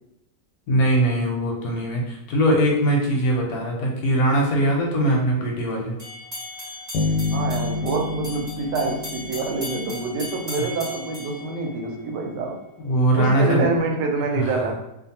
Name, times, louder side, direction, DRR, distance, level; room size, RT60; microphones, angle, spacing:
voice 1, 0.7-5.9 10.6-10.7 12.8-13.6 14.4-14.6, right 1 dB, 70° left, -2 dB, 1.0 m, -21 dB
sound 1, 6.0-12.2, left 2 dB, 35° right, 0.7 m, -37 dB
sound 2, 6.9-10.0, left 3 dB, 90° left, 1.2 m, -27 dB
voice 2, 7.3-12.6 13.1-14.8, right 3 dB, 85° right, 2 dB, 1.2 m, -26 dB
2.5 x 2.5 x 2.7 m, 0.86 s
omnidirectional pair, 1.8 m